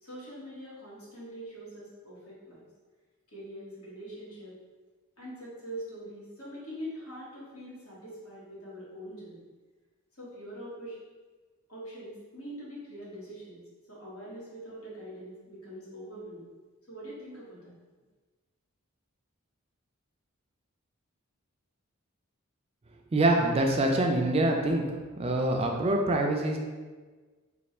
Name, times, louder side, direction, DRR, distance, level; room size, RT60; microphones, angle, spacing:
voice 1, 0.0-2.7 3.3-4.5 5.2-9.4 10.2-11.0 11.7-13.6 13.9-16.5 16.9-17.7, equal, 85° left, -7 dB, 1.4 m, -43 dB
voice 2, 23.1-24.8 25.2-26.6, right 1 dB, 25° right, 2 dB, 0.3 m, -25 dB
3.3 x 2.3 x 4.1 m, 1.4 s
head